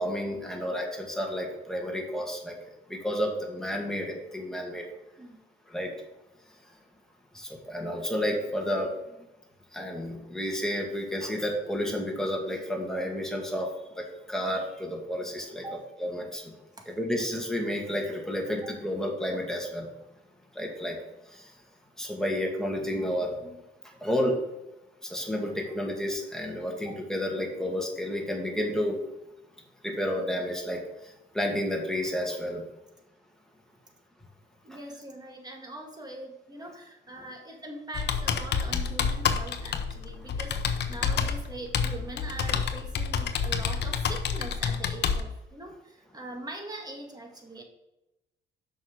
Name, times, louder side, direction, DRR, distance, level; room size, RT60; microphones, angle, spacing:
voice 1, 0.0-2.6 2.9-4.8 5.7-5.9 7.3-8.9 9.7-13.7 14.0-15.6 16.0-16.5 17.0-19.9 20.5-21.0 21.3-21.5 22.0-23.6 24.0-24.4 25.0-29.0 29.8-30.8 31.3-32.6, equal, ahead, 0 dB, 2.2 m, -31 dB
voice 2, 34.6-47.6, right 2 dB, 20° right, 2 dB, 2.0 m, -42 dB
Computer keyboard, 37.9-45.2, left 6 dB, 60° left, 0.8 m, -29 dB
6.3 x 5.6 x 6.3 m, 0.95 s
cardioid pair, 90°, 20 cm